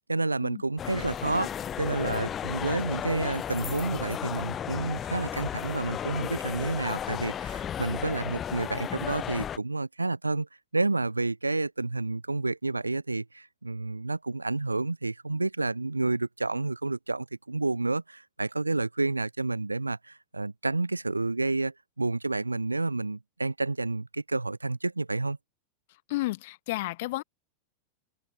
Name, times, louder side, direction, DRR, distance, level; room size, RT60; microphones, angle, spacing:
voice 1, 0.1-1.5 1.8-10.5 10.7-25.4, right 2 dB, 80° right, 0.5 m, -30 dB
sound 1, 0.8-9.6, left 9 dB, 25° left, 0.4 m, -34 dB
voice 2, 26.1-27.2, left 19 dB, 50° left, 1.2 m, -32 dB
open air
figure-of-eight pair, 90°, 0 cm